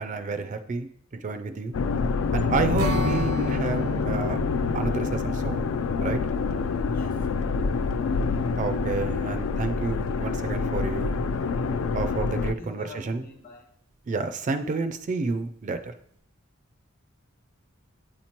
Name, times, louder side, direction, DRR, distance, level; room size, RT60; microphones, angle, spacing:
voice 1, 0.0-1.7 2.3-4.4 4.7-5.7 6.0-6.2 8.6-11.2 11.9-13.2 14.1-15.9, right 3 dB, 35° right, 9 dB, 0.3 m, -30 dB
sound 1, 1.7-12.5, left 4 dB, 70° left, 0.3 m, -27 dB
Strum, 2.8-8.2, right 1 dB, 85° right, 0.6 m, -34 dB
voice 2, 6.9-7.5 12.4-13.7, left 2 dB, 45° left, 3 dB, 1.1 m, -44 dB
8.6 x 2.9 x 4.3 m, 0.67 s
head